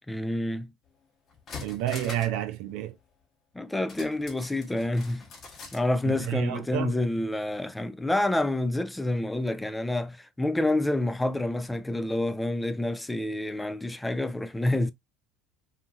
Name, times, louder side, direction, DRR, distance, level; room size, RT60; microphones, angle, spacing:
voice 1, 0.1-0.7 3.5-5.2 5.7-14.9, left 1 dB, 10° left, 0.3 m, -28 dB
sound 1, 0.9-1.0 1.3-2.4 2.7-2.8 3.9-5.9 6.2-6.3, left 4 dB, 45° left, 0.9 m, -43 dB
voice 2, 1.6-2.9 6.0-7.0, right 12 dB, 70° right, 0.5 m, -30 dB
2.8 x 2.4 x 2.4 m
hypercardioid pair, 80°, 0 cm